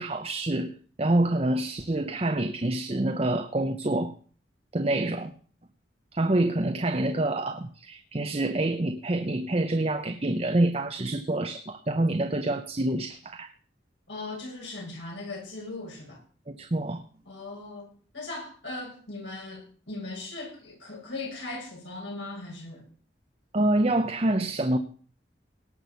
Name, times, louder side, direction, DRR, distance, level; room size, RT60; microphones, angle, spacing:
voice 1, 0.0-4.1 4.7-5.3 6.1-13.5 16.5-17.0 23.5-24.8, right 1 dB, 35° right, 0.8 m, -27 dB
voice 2, 14.1-16.2 17.3-22.8, left 2 dB, 85° left, 7.6 m, -39 dB
18.0 x 6.2 x 7.0 m
head